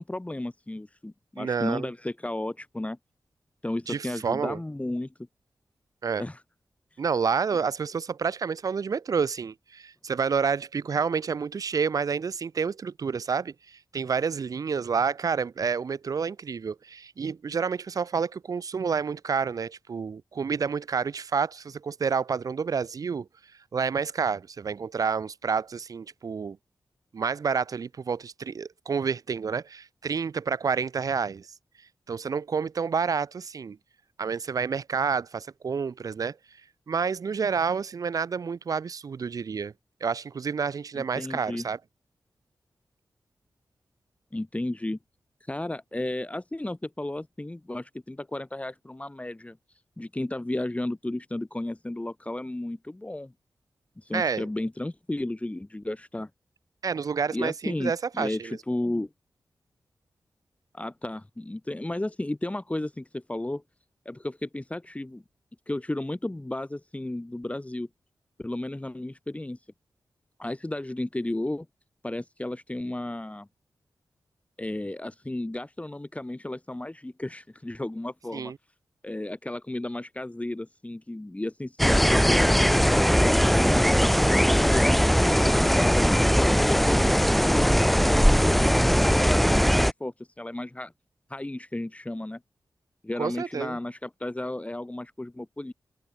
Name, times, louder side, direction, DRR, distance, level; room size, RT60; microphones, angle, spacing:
voice 1, 0.0-3.0 3.6-5.1 6.2-6.4 40.9-41.6 44.3-45.0 45.5-49.6 50.0-53.3 54.0-56.3 57.3-59.1 60.7-63.6 64.1-65.2 65.7-67.9 68.4-69.6 70.4-71.7 72.0-73.5 74.6-78.5 79.0-83.9 84.4-86.1 86.4-90.9 91.3-92.4 93.0-95.7, left 1 dB, 20° left, 2.4 m, -33 dB
voice 2, 1.4-1.9 3.9-4.6 6.0-6.2 7.0-23.3 23.7-26.6 27.1-31.5 32.1-33.8 34.2-36.4 36.9-39.7 40.0-41.8 54.1-54.5 56.8-58.6 78.3-78.6 93.2-93.8, right 6 dB, 55° right, 0.4 m, -29 dB
sound 1, 81.8-89.9, equal, ahead, 0.4 m, -20 dB
open air
cardioid pair, 55°, 7 cm